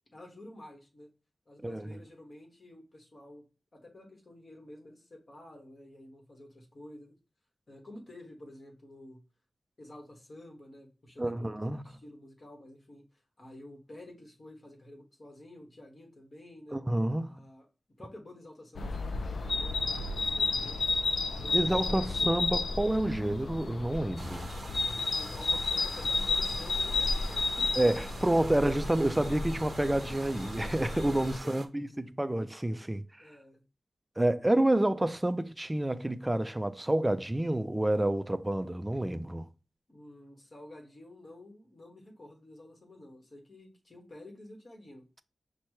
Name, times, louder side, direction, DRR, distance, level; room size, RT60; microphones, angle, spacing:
voice 1, 0.1-1.1 1.5-3.5 3.7-7.1 7.7-9.2 9.8-11.5 11.8-16.8 17.3-17.7 18.0-20.8 21.3-22.6 25.1-27.7 31.4-31.5 31.9-32.1 32.7-32.8 33.2-33.6 39.9-45.0, left 1 dB, 50° left, 1.5 m, -51 dB
voice 2, 1.6-1.9 11.2-11.8 16.7-17.5 21.5-24.5 27.8-33.0 34.2-39.5, right 1 dB, 15° right, 0.4 m, -29 dB
sound 1, 18.7-31.4, left 3 dB, 80° left, 0.4 m, -32 dB
sound 2, 24.2-31.7, right 3 dB, 55° right, 0.6 m, -46 dB
5.7 x 2.2 x 3.0 m
wide cardioid pair, 80°, 0 cm